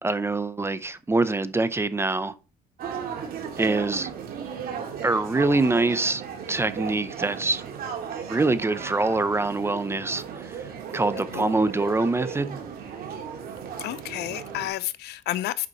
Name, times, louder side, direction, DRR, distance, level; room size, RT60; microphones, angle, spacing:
voice 1, 0.0-2.3 3.6-4.1 5.0-6.2 6.5-7.6 8.3-12.6, right 3 dB, 15° right, 0.6 m, -25 dB
sound 1, 2.8-14.7, right 7 dB, 60° right, 2.2 m, -35 dB
voice 2, 13.8-15.7, left 14 dB, 80° left, 0.6 m, -31 dB
8.4 x 5.2 x 4.0 m
cardioid pair, 110°, 17 cm